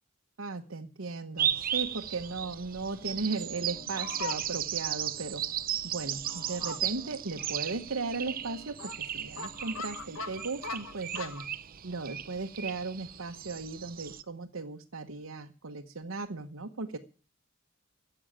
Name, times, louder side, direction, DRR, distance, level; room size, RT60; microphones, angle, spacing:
voice 1, 0.4-5.4 5.8-11.4 11.8-17.0, right 3 dB, 80° right, 2 dB, 1.1 m, -37 dB
sound 1, 1.4-14.2, right 10 dB, 45° right, 0.7 m, -36 dB
Fowl, 2.5-11.5, left 4 dB, 80° left, 1.2 m, -44 dB
sound 2, 2.9-11.0, equal, 25° left, 2.9 m, -55 dB
14.0 x 7.9 x 8.9 m, 0.39 s
head